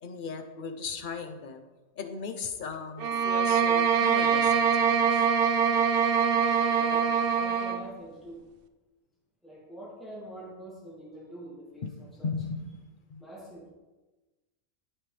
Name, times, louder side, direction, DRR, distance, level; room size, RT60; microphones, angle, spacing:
voice 1, 0.0-1.6 2.0-5.3 11.8-11.9 12.2-12.8 13.1-13.2, left 5 dB, 45° left, 6 dB, 0.8 m, -37 dB
sound 1, 3.0-7.8, right 6 dB, 60° right, 0.6 m, -24 dB
voice 2, 6.6-8.4 9.4-12.3 13.2-13.7, right 1 dB, ahead, -7 dB, 2.5 m, -45 dB
9.1 x 7.4 x 3.4 m, 1.1 s
omnidirectional pair, 1.4 m